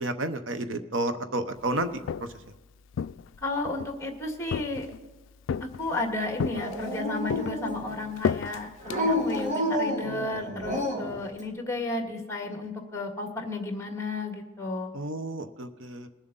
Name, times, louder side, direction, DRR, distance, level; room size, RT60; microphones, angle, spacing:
voice 1, 0.0-2.0 14.9-16.1, right 2 dB, 75° right, 9 dB, 0.9 m, -31 dB
Walk footsteps, 1.8-2.5 2.9-4.0 4.5-5.1 5.5-6.0 6.4-7.0 7.3-9.5, left 7 dB, 70° left, 0.3 m, -32 dB
voice 2, 3.4-4.9 5.8-14.9, left 2 dB, 15° left, 3 dB, 1.9 m, -33 dB
Dog, 6.5-8.0 8.8-11.2, equal, 40° right, 2.1 m, -30 dB
21.5 x 7.3 x 4.0 m, 1.2 s
head